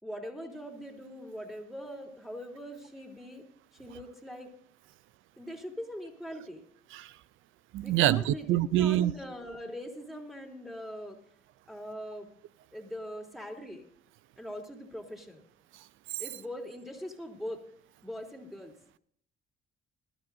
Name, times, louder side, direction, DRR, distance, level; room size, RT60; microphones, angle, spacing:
voice 1, 0.0-3.4 3.7-4.5 5.4-6.6 7.8-11.2 11.7-12.3 12.7-13.8 14.4-15.4 16.2-17.7 18.0-18.7, equal, ahead, 3.3 m, -42 dB
voice 2, 7.7-9.1 15.7-16.2, right 13 dB, 85° right, 0.5 m, -27 dB
20.5 x 12.5 x 2.6 m
cardioid pair, 90°, 20 cm